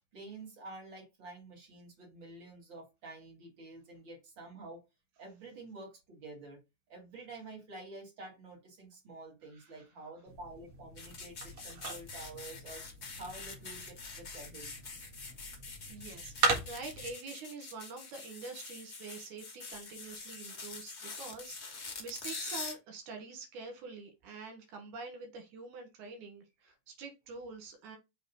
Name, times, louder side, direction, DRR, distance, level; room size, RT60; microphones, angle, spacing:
voice 1, 0.1-4.8 5.2-6.6 6.9-12.8 13.2-14.7, right 2 dB, 40° right, 0 dB, 2.7 m, -49 dB
sound 1, 10.3-17.1, right 4 dB, 65° right, 2.7 m, -38 dB
sound 2, 11.0-22.7, left 4 dB, 40° left, 1.0 m, -45 dB
voice 2, 15.9-28.0, right 4 dB, 85° right, 5 dB, 3.0 m, -46 dB
6.5 x 3.2 x 5.4 m, 0.24 s
omnidirectional pair, 3.4 m